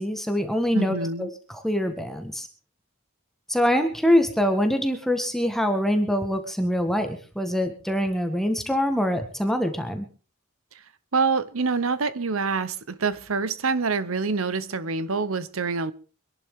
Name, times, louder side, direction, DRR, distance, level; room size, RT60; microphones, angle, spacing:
voice 1, 0.0-2.5 3.5-10.1, equal, ahead, 1.4 m, -24 dB
voice 2, 0.7-1.3 11.1-15.9, right 4 dB, 70° right, 0.9 m, -26 dB
25.0 x 11.5 x 3.7 m
head